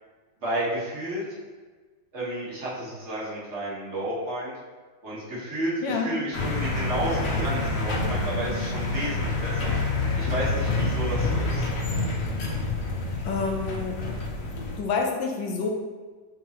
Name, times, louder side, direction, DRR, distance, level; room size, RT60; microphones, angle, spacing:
voice 1, 0.4-1.2 2.1-4.5 5.0-9.8 10.2-11.7, right 1 dB, 40° right, -7 dB, 1.5 m, -31 dB
voice 2, 5.8-6.1 13.2-14.1 14.4-15.7, left 4 dB, 85° left, 1 dB, 1.3 m, -28 dB
sound 1, 6.3-14.8, left 2 dB, 70° left, 0.6 m, -27 dB
4.7 x 3.7 x 2.9 m, 1.4 s
omnidirectional pair, 1.9 m